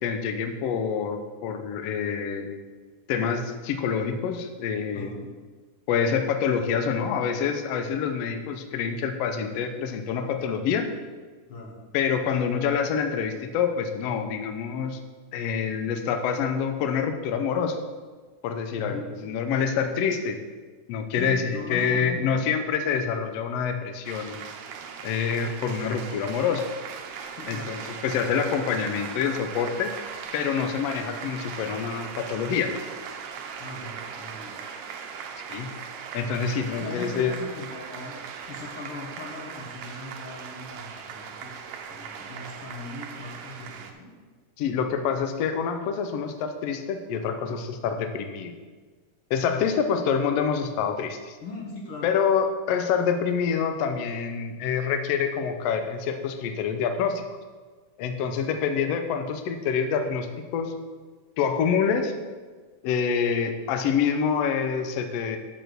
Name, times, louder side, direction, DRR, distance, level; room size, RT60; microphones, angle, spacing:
voice 1, 0.0-2.6 3.1-5.1 5.9-10.9 11.9-15.0 15.3-17.8 18.4-20.4 20.9-24.4 25.0-26.6 27.5-29.9 30.3-32.7 35.5-35.7 36.1-37.4 44.6-48.5 49.3-51.4 52.0-57.3 58.0-60.7 61.4-62.1 62.8-65.4, left 6 dB, 70° left, 7 dB, 1.6 m, -26 dB
voice 2, 4.9-5.3 11.5-11.7 18.8-19.1 21.2-22.4 27.4-27.7 33.6-34.5 36.7-41.6 41.9-44.1 47.9-48.0 49.5-49.6 51.4-52.1 58.5-58.6, left 2 dB, 55° left, -1 dB, 1.9 m, -39 dB
sound 1, 24.0-43.9, right 6 dB, 80° right, 1.3 m, -39 dB
6.7 x 6.3 x 6.7 m, 1.4 s
omnidirectional pair, 3.5 m